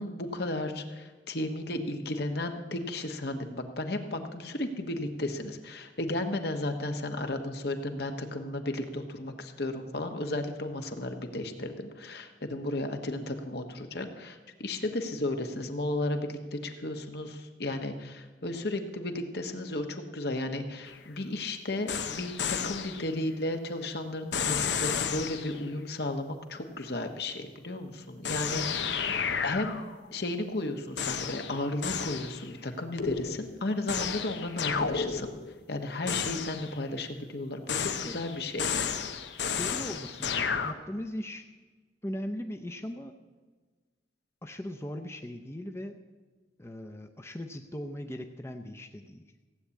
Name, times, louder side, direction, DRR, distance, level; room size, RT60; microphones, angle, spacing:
voice 1, 0.0-29.1 29.4-29.7 30.1-35.3 35.7-39.0, left 1 dB, 65° left, 5 dB, 1.4 m, -34 dB
sound 1, 20.9-21.0 21.9-23.1 24.3-25.6 28.2-30.1 31.0-32.5 33.0-35.6 36.1-36.8 37.7-40.7, left 6 dB, 85° left, 1.0 m, -32 dB
voice 2, 38.1-38.4 39.6-41.4 42.0-43.1 44.4-46.0 46.6-49.2, equal, 15° left, 5 dB, 0.7 m, -39 dB
16.5 x 8.6 x 8.4 m, 1.3 s
head